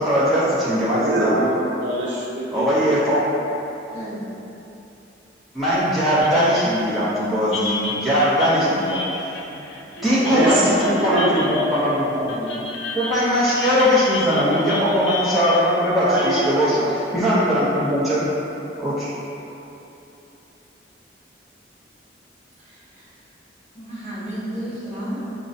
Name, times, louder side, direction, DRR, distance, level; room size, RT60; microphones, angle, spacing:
voice 1, 0.0-1.5 2.5-3.2 5.5-9.3 10.0-12.6 12.9-18.3 18.8-19.1, equal, ahead, -13 dB, 0.6 m, -20 dB
voice 2, 0.9-2.8 3.1-3.3 9.9-11.3 11.6-11.7 16.0-17.0, right 1 dB, 80° right, -6 dB, 0.5 m, -24 dB
voice 3, 3.9-4.5 22.6-23.2 23.7-25.2, equal, 40° right, -11 dB, 1.1 m, -33 dB
sound 1, 6.2-17.9, left 3 dB, 75° left, 0.4 m, -33 dB
5.1 x 2.2 x 2.6 m, 3.0 s
head